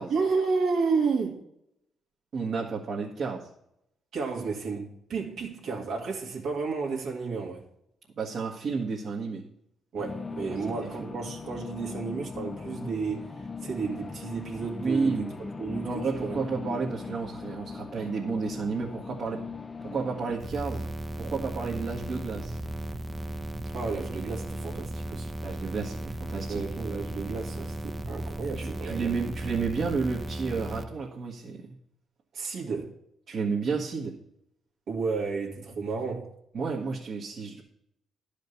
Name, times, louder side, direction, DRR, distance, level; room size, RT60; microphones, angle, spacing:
voice 1, 0.1-1.4 4.1-7.6 9.9-16.4 16.7-16.8 23.7-25.3 26.5-29.1 32.3-32.9 34.9-36.3, right 4 dB, 75° right, 2.1 m, -32 dB
voice 2, 2.3-3.4 8.2-9.4 10.5-10.9 14.8-15.3 15.8-19.4 19.8-20.8 21.2-22.6 25.4-26.6 28.5-31.7 33.3-34.1 36.5-37.6, right 4 dB, 55° right, 1.6 m, -31 dB
sound 1, 10.0-20.4, left 4 dB, 25° left, 0.6 m, -39 dB
sound 2, 20.4-30.8, right 1 dB, 20° right, 0.8 m, -36 dB
11.0 x 5.2 x 6.7 m
cardioid pair, 90°, 0 cm